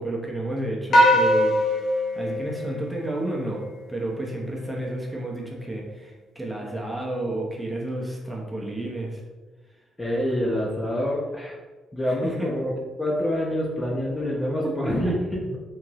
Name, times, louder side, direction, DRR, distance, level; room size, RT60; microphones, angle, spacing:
voice 1, 0.0-1.5 2.1-9.2 12.1-12.5 14.8-15.1, right 1 dB, 10° right, -2 dB, 1.0 m, -31 dB
sound 1, 0.9-3.5, equal, 55° left, 0.9 m, -21 dB
voice 2, 10.0-11.5 11.9-15.6, equal, 20° left, -3 dB, 0.9 m, -26 dB
4.5 x 3.6 x 3.1 m, 1.2 s
cardioid pair, 90°, 0 cm